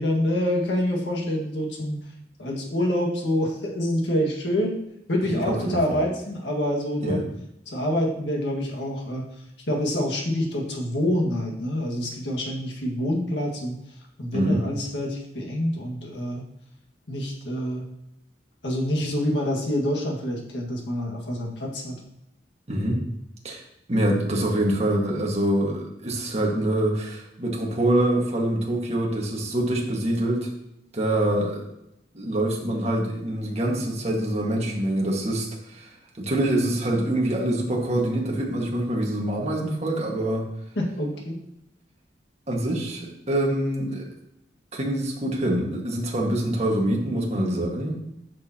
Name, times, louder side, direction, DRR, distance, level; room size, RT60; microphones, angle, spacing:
voice 1, 0.0-2.0 2.4-4.7 5.1-7.2 7.7-9.2 9.7-13.8 14.2-16.4 17.1-17.8 18.6-21.9 40.8-41.3, left 1 dB, 80° left, 0 dB, 1.8 m, -26 dB
voice 2, 5.5-6.0 7.0-7.2 14.3-14.6 22.7-23.0 23.4-23.6 23.9-30.5 30.9-31.7 32.1-40.4 42.5-44.1 44.7-47.9, right 1 dB, 40° right, -1 dB, 1.7 m, -25 dB
10.5 x 6.4 x 2.9 m, 0.83 s
head